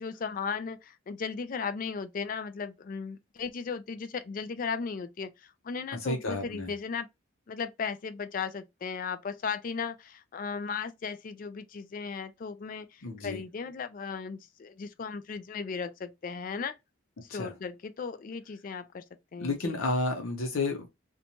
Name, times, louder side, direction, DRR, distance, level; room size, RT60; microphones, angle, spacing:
voice 1, 0.0-5.3 5.6-7.1 7.5-16.7 17.2-19.0 19.3-19.8, left 5 dB, 40° left, 0.3 m, -36 dB
voice 2, 5.9-6.7 13.0-13.4 17.3-17.5 19.4-20.9, left 2 dB, 80° left, 0.6 m, -31 dB
2.6 x 2.2 x 2.8 m
head